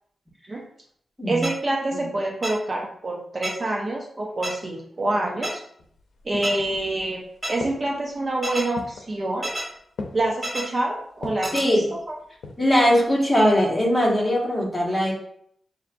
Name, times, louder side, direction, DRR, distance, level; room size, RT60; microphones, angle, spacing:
voice 1, 1.3-5.6 6.2-9.5 10.1-12.2, right 2 dB, 40° right, 0 dB, 0.6 m, -27 dB
sound 1, 1.4-1.5 2.4-2.5 3.4-3.5 4.4-4.5 5.4-5.5 6.4-6.5 7.4-7.5 8.4-8.6 9.4-9.6 10.4-10.6 11.4-11.6, right 1 dB, 25° right, 1.6 m, -28 dB
sound 2, 5.8-7.1 7.6-8.1 8.8-9.2 10.0-10.4 11.2-11.6 12.2-12.8 13.1-13.2, left 3 dB, 85° left, 0.6 m, -37 dB
voice 2, 11.5-11.9 12.6-15.1, equal, 10° left, -4 dB, 1.5 m, -20 dB
6.3 x 2.6 x 2.6 m, 0.66 s
wide cardioid pair, 90°, 0 cm